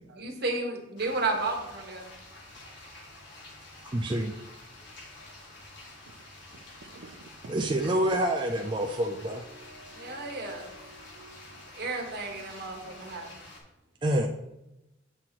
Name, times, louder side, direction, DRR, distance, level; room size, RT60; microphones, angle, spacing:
voice 1, 0.2-2.1 10.0-10.7 11.8-13.4, right 3 dB, 55° right, 1 dB, 1.3 m, -32 dB
sound 1, 1.0-13.6, left 2 dB, 70° left, 1.7 m, -48 dB
voice 2, 3.9-4.4 7.5-9.4 14.0-14.3, right 1 dB, 25° right, 2 dB, 0.4 m, -27 dB
voice 3, 5.9-6.2 6.5-7.9 10.1-10.2, right 3 dB, 75° right, 3 dB, 0.6 m, -52 dB
7.7 x 3.0 x 5.8 m, 0.91 s
head